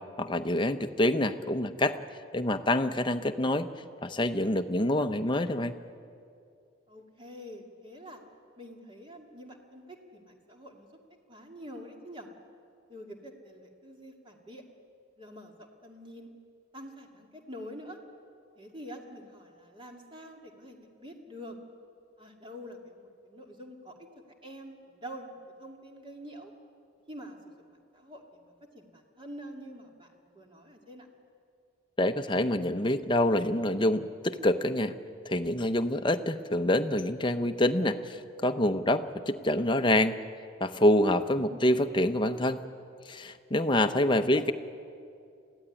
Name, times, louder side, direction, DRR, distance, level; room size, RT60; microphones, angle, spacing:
voice 1, 0.2-1.9 2.3-3.7 4.0-5.7 32.0-34.9 35.2-40.2 40.6-42.6 43.1-44.5, left 1 dB, 25° left, 8 dB, 0.8 m, -26 dB
voice 2, 6.9-8.2 8.6-10.9 11.3-12.3 12.9-14.6 15.2-16.3 16.7-18.0 18.6-21.6 22.2-23.9 24.4-26.5 27.1-27.4 27.7-30.1 30.3-31.1 41.5-41.6 44.3-44.4, equal, 25° right, 2 dB, 2.3 m, -46 dB
22.0 x 15.5 x 10.0 m, 2.4 s
head